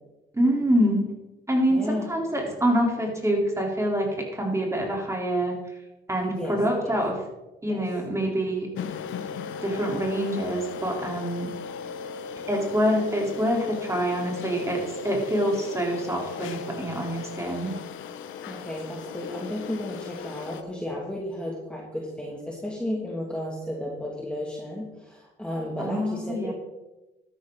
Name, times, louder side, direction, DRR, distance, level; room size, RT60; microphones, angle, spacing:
voice 1, 0.3-1.1 1.5-5.5 6.1-7.1 7.6-8.7 9.6-11.5 12.5-17.8 25.8-26.5, equal, 15° right, -1 dB, 3.9 m, -26 dB
voice 2, 1.7-2.1 6.3-7.0 7.7-7.9 18.4-26.5, left 1 dB, 5° left, -3 dB, 2.4 m, -33 dB
sound 1, 8.8-20.6, left 6 dB, 80° left, 1.0 m, -37 dB
12.5 x 11.0 x 4.0 m, 1.0 s
cardioid pair, 90°, 20 cm